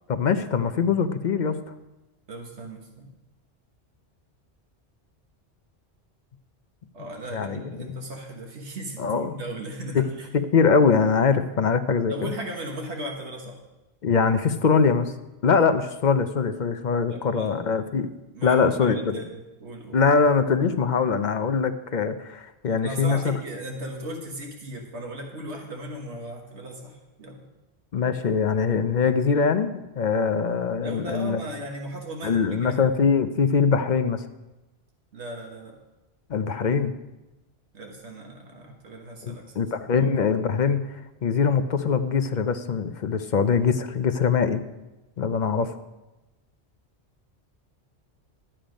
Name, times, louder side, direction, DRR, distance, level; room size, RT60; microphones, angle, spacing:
voice 1, 0.1-1.6 7.3-7.9 9.0-9.4 9.9-10.0 10.3-12.3 14.0-15.1 15.4-18.1 18.4-19.2 19.9-23.4 27.9-31.4 32.2-34.2 36.3-36.9 39.2-40.8 41.2-44.6 45.2-45.7, left 5 dB, 50° left, 10 dB, 0.7 m, -22 dB
voice 2, 2.3-3.1 6.9-10.3 12.1-13.6 17.1-17.5 18.3-20.0 22.8-27.5 30.8-32.8 35.1-35.8 37.7-40.1, right 1 dB, 85° right, 1 dB, 1.7 m, -37 dB
11.5 x 8.9 x 5.2 m, 1.0 s
omnidirectional pair, 1.1 m